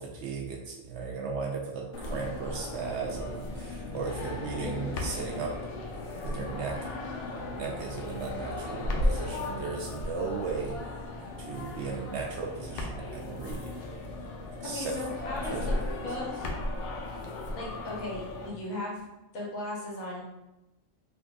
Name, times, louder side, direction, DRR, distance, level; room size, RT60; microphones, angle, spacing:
voice 1, 0.0-5.5 6.2-6.8 7.3-10.8 11.4-13.7 14.6-14.9 15.5-15.6, right 4 dB, 65° right, 0 dB, 0.7 m, -36 dB
sound 1, 1.9-18.5, left 2 dB, 70° left, 0.9 m, -35 dB
voice 2, 14.6-15.8 16.0-16.5 17.5-19.0 19.3-20.2, left 1 dB, 85° left, -4 dB, 1.5 m, -37 dB
3.6 x 3.2 x 2.3 m, 0.94 s
omnidirectional pair, 1.4 m